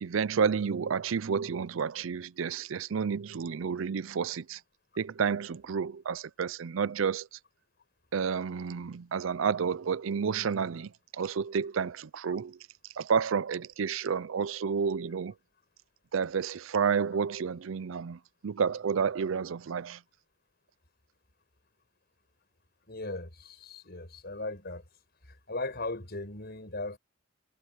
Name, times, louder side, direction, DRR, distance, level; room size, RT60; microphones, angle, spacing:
voice 1, 0.0-4.6 5.0-7.3 8.1-12.6 13.0-15.3 16.1-20.0, right 6 dB, 90° right, 0.5 m, -30 dB
voice 2, 22.9-24.8 25.5-27.0, left 2 dB, 55° left, 5.3 m, -37 dB
head